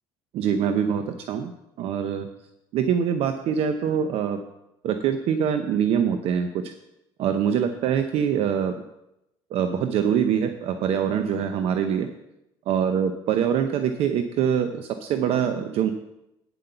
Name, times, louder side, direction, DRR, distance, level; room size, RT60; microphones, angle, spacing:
voice 1, 0.3-1.5 1.8-2.3 2.7-4.4 4.8-6.7 7.2-8.7 9.5-12.1 12.7-15.9, right 8 dB, 60° right, 8 dB, 0.7 m, -24 dB
9.3 x 7.9 x 5.6 m, 0.88 s
cardioid pair, 105°, 11 cm